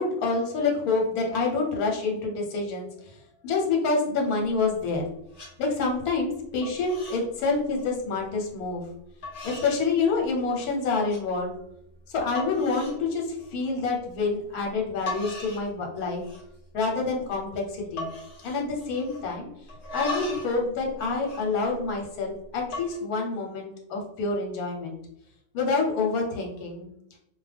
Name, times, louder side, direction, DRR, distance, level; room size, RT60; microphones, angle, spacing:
voice 1, 0.0-2.9 3.4-5.0 5.6-8.8 9.4-11.5 12.1-13.2 13.5-16.2 16.7-18.1 18.4-19.5 19.9-25.0 25.5-26.9, left 4 dB, 80° left, 1 dB, 1.2 m, -27 dB
sound 1, 4.4-5.0 5.3-5.5 6.0-6.3 6.6-7.3 7.6-7.9 8.6-8.7 9.2-9.8 10.2-10.7 11.1-11.2 11.8-11.9 12.3-13.0 13.4-13.7 14.7-14.8 15.1-15.7 16.0-16.6 16.9-17.0 17.2-17.5 18.0-19.3 19.7-20.6 20.8-22.1 22.6-23.0, left 2 dB, 55° left, 1.0 m, -38 dB
2.4 x 2.2 x 3.3 m, 0.77 s
omnidirectional pair, 1.6 m